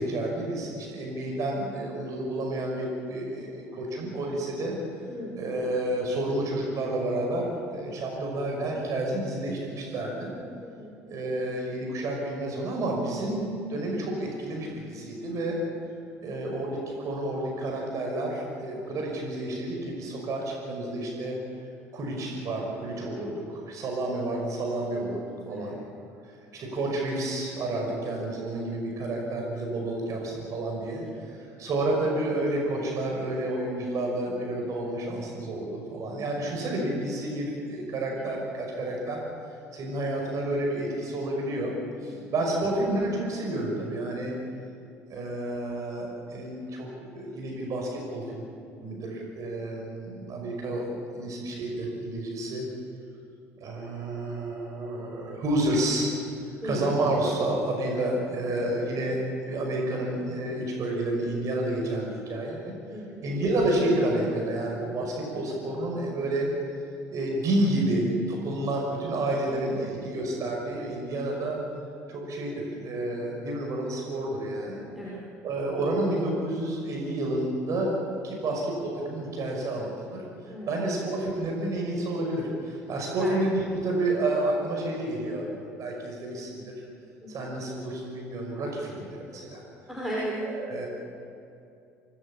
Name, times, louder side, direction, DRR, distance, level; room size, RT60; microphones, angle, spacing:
voice 1, 0.0-4.8 5.4-10.3 11.1-15.6 16.2-21.4 21.9-25.8 26.5-39.2 39.7-41.7 42.0-44.3 45.1-48.5 48.8-52.6 53.6-56.1 56.6-62.7 63.2-66.5 67.1-71.6 72.1-74.8 75.4-80.2 80.7-86.7 87.3-89.6 90.4-90.9, right 1 dB, 45° right, 0 dB, 5.8 m, -30 dB
voice 2, 5.1-5.4 10.6-10.9 18.9-19.0 25.5-25.8 38.2-38.3 42.1-42.3 56.6-56.8 62.9-63.2 69.5-70.0 74.9-75.2 80.5-80.7 83.2-83.3 87.2-87.4 89.9-90.3, equal, 5° right, -5 dB, 5.6 m, -37 dB
26.5 x 19.0 x 7.3 m, 2.6 s
figure-of-eight pair, 60°, 8 cm